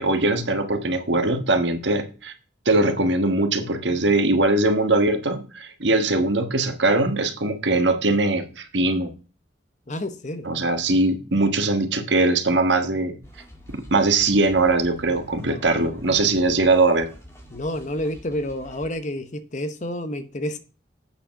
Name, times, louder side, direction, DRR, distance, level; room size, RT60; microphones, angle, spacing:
voice 1, 0.0-2.3 2.6-9.1 10.4-13.2 13.7-17.1, right 2 dB, 75° right, 1.3 m, -21 dB
voice 2, 9.9-10.5 15.4-15.6 17.5-20.6, left 1 dB, 40° left, 0.8 m, -30 dB
sound 1, 13.2-18.9, equal, 15° left, 1.6 m, -46 dB
8.4 x 4.9 x 5.8 m
head